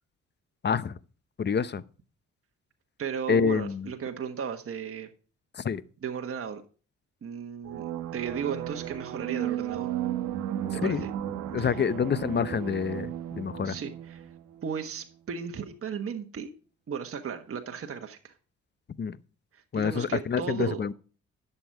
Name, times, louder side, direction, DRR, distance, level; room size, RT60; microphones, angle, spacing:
voice 1, 0.6-1.0 1.4-1.8 3.3-3.9 5.5-5.8 10.8-11.0 11.5-13.8 19.0-19.2 19.7-20.9, left 6 dB, 35° left, 0.7 m, -27 dB
voice 2, 3.0-5.1 6.0-6.6 7.2-9.9 10.7-11.1 11.6-11.8 13.6-14.3 14.6-16.5 16.9-18.3 19.5-20.9, right 7 dB, 45° right, 1.4 m, -35 dB
sound 1, 7.6-15.0, right 11 dB, 80° right, 1.2 m, -34 dB
11.0 x 7.0 x 4.7 m
supercardioid pair, 60°, 30 cm